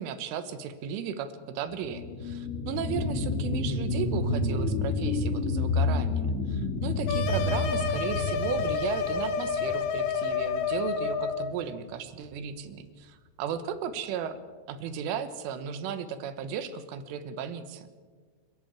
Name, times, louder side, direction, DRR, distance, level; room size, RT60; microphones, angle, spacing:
voice 1, 0.0-14.4 14.7-17.9, right 7 dB, 85° right, 11 dB, 3.7 m, -35 dB
sound 1, 1.7-10.8 11.2-11.3, left 3 dB, 65° left, 5.2 m, -30 dB
sound 2, 7.1-11.5, left 6 dB, 85° left, 4.1 m, -29 dB
29.0 x 11.5 x 9.0 m, 1.5 s
omnidirectional pair, 5.5 m